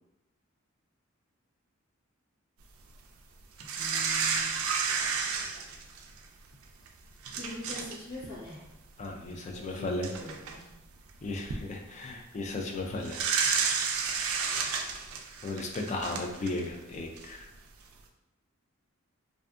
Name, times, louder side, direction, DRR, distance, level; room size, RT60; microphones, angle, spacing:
voice 1, 3.6-4.6 7.3-8.6 9.2-10.7, left 1 dB, 80° left, -8 dB, 0.9 m, -44 dB
sound 1, 3.6-6.2 6.9-7.0 7.2-8.0 8.2-8.4 9.5-9.6 10.0-10.6 11.2-11.6 13.0-16.7 17.2-17.3, right 5 dB, 80° right, 0.3 m, -31 dB
voice 2, 9.0-10.1 11.2-13.3 15.4-17.5, left 2 dB, 35° left, 2 dB, 0.3 m, -35 dB
2.5 x 2.4 x 2.4 m, 1.0 s
head